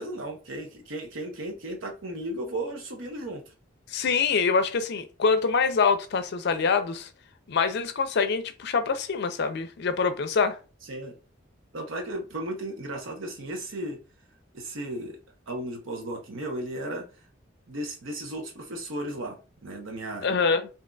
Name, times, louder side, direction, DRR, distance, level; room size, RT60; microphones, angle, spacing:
voice 1, 0.0-3.5 10.9-11.2 11.7-14.0 14.5-15.2 15.5-17.1 17.7-20.4, right 1 dB, 80° right, 0.9 m, -35 dB
voice 2, 3.9-7.1 7.5-10.6 20.2-20.7, left 5 dB, 60° left, 0.5 m, -25 dB
3.8 x 2.7 x 2.2 m
head